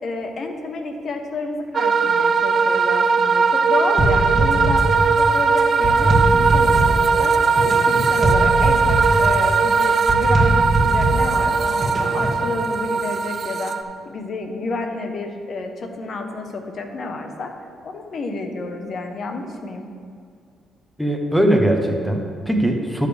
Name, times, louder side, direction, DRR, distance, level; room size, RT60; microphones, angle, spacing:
voice 1, 0.0-4.8 5.2-7.3 7.9-13.8 14.0-17.5 17.8-19.9, left 3 dB, 55° left, 5 dB, 1.0 m, -30 dB
sound 1, 1.7-13.8, right 5 dB, 50° right, 0.5 m, -19 dB
sound 2, 4.0-12.4, right 1 dB, 30° right, 2.4 m, -22 dB
voice 2, 21.0-23.1, right 1 dB, ahead, 3 dB, 1.0 m, -20 dB
12.0 x 6.6 x 3.4 m, 2.3 s
cardioid pair, 90°, 0 cm